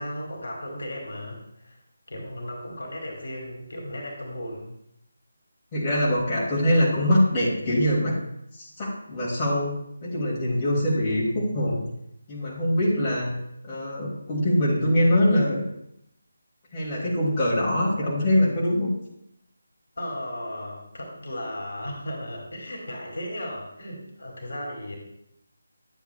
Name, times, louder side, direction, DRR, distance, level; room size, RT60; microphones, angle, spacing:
voice 1, 0.0-1.8 2.1-4.7 20.0-25.0, left 1 dB, 60° left, -1 dB, 2.2 m, -35 dB
voice 2, 5.7-8.2 8.5-11.8 12.3-13.3 13.6-15.6 16.7-18.9, left 1 dB, 20° left, -7 dB, 2.3 m, -23 dB
11.5 x 8.1 x 2.2 m, 0.78 s
figure-of-eight pair, 155°, 0 cm